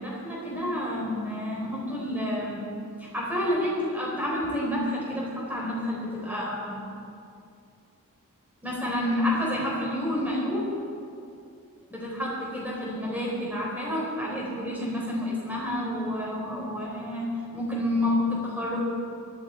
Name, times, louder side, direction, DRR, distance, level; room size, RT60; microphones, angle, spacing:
voice 1, 0.0-2.7 3.0-6.8 8.6-10.6 11.9-17.2 17.5-18.8, left 1 dB, 10° right, -5 dB, 4.0 m, -29 dB
17.5 x 12.0 x 4.5 m, 2.5 s
head